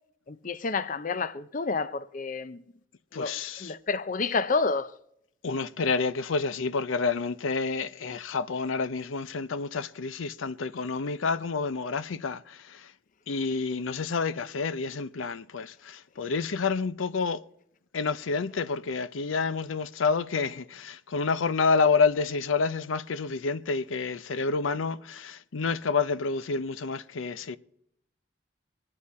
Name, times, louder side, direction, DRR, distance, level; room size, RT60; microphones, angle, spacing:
voice 1, 0.3-2.6 3.1-4.9, left 4 dB, 40° left, 0.5 m, -29 dB
voice 2, 3.1-3.7 5.4-12.9 13.3-17.4 17.9-27.6, left 4 dB, 85° left, 0.6 m, -29 dB
25.5 x 9.8 x 4.2 m
head